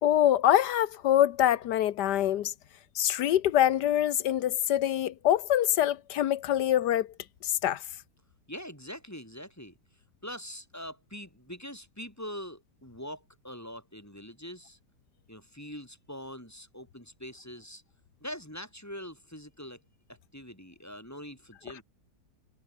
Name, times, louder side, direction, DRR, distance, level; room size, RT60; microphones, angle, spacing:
voice 1, 0.0-2.5 2.9-7.1 7.4-7.8, left 11 dB, 85° left, 1.4 m, -25 dB
voice 2, 8.5-9.7 10.2-14.8 15.3-17.8 18.2-19.8 20.3-21.8, equal, 10° left, 4.9 m, -43 dB
omnidirectional pair, 1.7 m